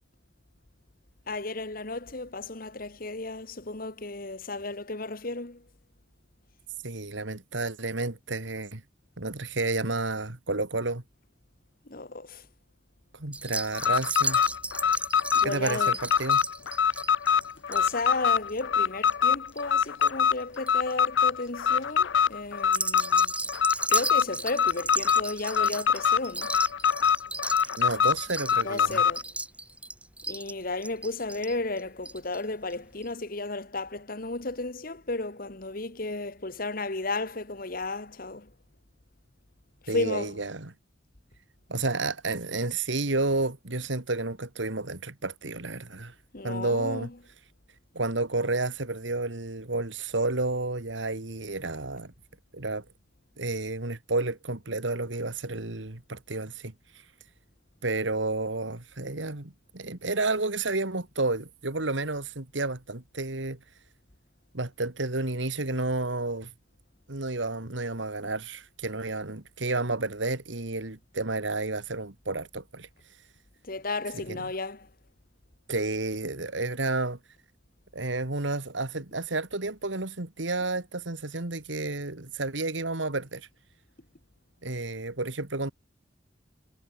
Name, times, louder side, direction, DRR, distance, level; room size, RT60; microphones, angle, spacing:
voice 1, 1.3-5.6 11.9-12.5 15.3-15.9 17.7-23.3 23.9-26.6 28.6-29.3 30.3-38.5 39.8-40.3 46.3-47.1 73.6-74.9, left 2 dB, 50° left, 1.7 m, -34 dB
voice 2, 6.8-8.8 9.2-11.0 13.1-14.4 15.4-16.4 27.8-29.0 39.9-40.7 41.7-46.1 46.4-47.1 47.9-52.1 52.5-52.8 53.4-56.7 57.8-63.6 64.5-66.5 67.1-72.9 74.2-74.4 75.7-77.2 77.9-83.5 84.6-85.7, right 2 dB, 80° right, 2.3 m, -31 dB
sound 1, 13.3-20.1 20.4-20.9 21.4-21.8 22.6-32.4 32.7-32.8 33.0-33.1, right 2 dB, 5° right, 3.5 m, -35 dB
Alarm, 13.7-29.2, left 7 dB, 80° left, 0.6 m, -24 dB
head